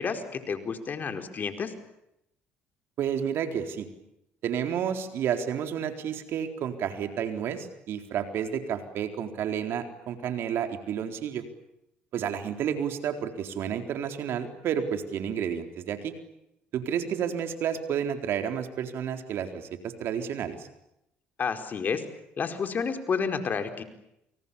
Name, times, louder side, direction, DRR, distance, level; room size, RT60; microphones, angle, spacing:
voice 1, 0.0-1.7 21.4-22.0 22.4-23.8, left 5 dB, 45° left, 7 dB, 4.7 m, -30 dB
voice 2, 3.0-3.9 4.4-11.4 12.1-16.1 16.7-20.7, right 8 dB, 65° right, 6 dB, 4.0 m, -31 dB
29.5 x 28.5 x 7.1 m, 0.84 s
supercardioid pair, 75°, 4 cm